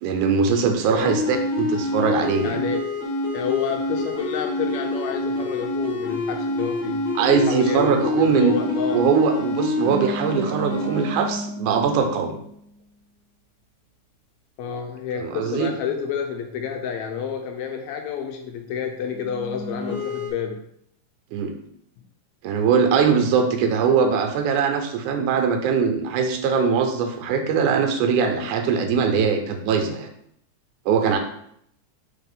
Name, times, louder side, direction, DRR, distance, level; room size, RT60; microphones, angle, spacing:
voice 1, 0.0-2.6 7.2-12.4 15.2-15.7 21.3-21.5 22.4-30.1 30.9-31.2, right 6 dB, 85° right, 5 dB, 2.2 m, -21 dB
sound 1, 1.0-12.7 19.0-20.3, left 2 dB, 30° left, 1.1 m, -27 dB
voice 2, 2.4-2.8 3.3-9.1 14.6-20.6, left 7 dB, 80° left, 4 dB, 1.7 m, -29 dB
4.4 x 4.2 x 5.2 m, 0.71 s
omnidirectional pair, 3.5 m